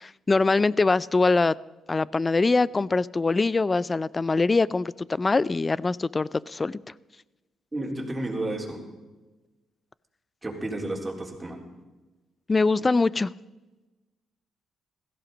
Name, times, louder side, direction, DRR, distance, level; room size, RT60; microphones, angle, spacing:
voice 1, 0.0-1.6 1.9-6.8 12.5-13.3, left 3 dB, 25° left, 21 dB, 0.4 m, -23 dB
voice 2, 7.7-8.8 10.4-11.6, right 1 dB, 15° right, -1 dB, 3.9 m, -32 dB
16.5 x 15.0 x 5.2 m, 1.2 s
cardioid pair, 85°, 0 cm